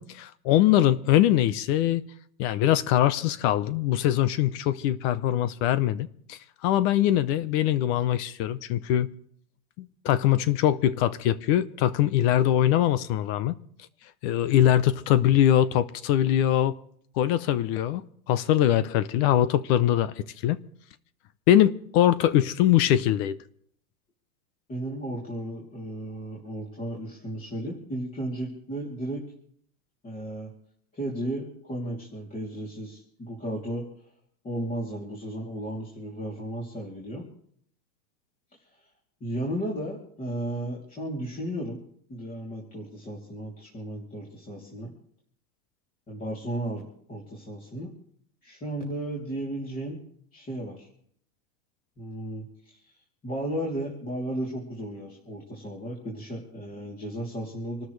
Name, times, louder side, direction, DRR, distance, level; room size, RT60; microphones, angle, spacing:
voice 1, 0.0-2.0 2.4-9.1 9.8-13.5 14.2-16.8 17.2-18.0 18.3-20.6 21.5-23.4, left 12 dB, 45° left, 0.7 m, -22 dB
voice 2, 24.7-29.2 30.0-30.5 30.9-33.9 34.4-37.3 39.2-41.8 42.1-44.9 46.1-47.9 48.4-50.0 50.3-50.9 52.0-52.8 53.2-57.8, right 1 dB, 15° left, 3.0 m, -34 dB
27.0 x 13.0 x 3.2 m
supercardioid pair, 150°, 47 cm